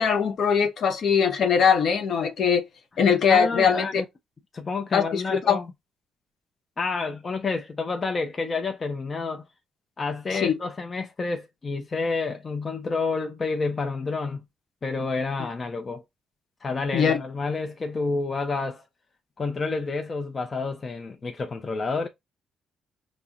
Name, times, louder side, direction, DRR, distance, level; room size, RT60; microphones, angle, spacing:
voice 1, 0.0-2.6 3.0-4.0 4.9-5.6 10.3-10.6 16.9-17.2, left 6 dB, 60° left, 0.9 m, -21 dB
voice 2, 3.3-4.0 4.5-5.7 6.8-9.4 10.0-14.4 14.8-16.0 16.6-18.8 19.4-22.1, left 4 dB, 35° left, 0.5 m, -29 dB
5.6 x 2.1 x 2.4 m
cardioid pair, 90°, 0 cm